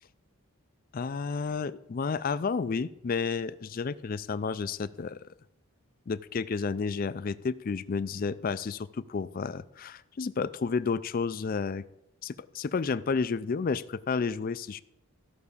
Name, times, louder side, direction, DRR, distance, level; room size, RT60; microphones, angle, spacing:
voice 1, 0.9-5.2 6.1-11.8 12.2-14.8, left 5 dB, 40° left, 15 dB, 0.3 m, -31 dB
13.0 x 5.9 x 6.8 m, 0.85 s
head